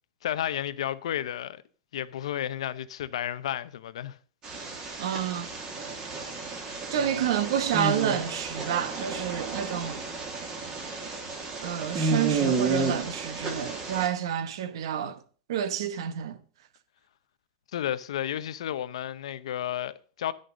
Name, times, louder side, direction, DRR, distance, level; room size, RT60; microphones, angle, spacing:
voice 1, 0.2-1.6 1.9-4.2 7.0-7.3 17.7-20.3, left 11 dB, 80° left, 0.8 m, -32 dB
sound 1, 4.4-14.1, right 3 dB, 20° right, 1.7 m, -32 dB
voice 2, 5.0-5.5 6.9-10.0 11.6-15.2 15.5-16.4, right 9 dB, 55° right, 1.0 m, -29 dB
11.0 x 6.6 x 6.2 m
supercardioid pair, 180°, 3 cm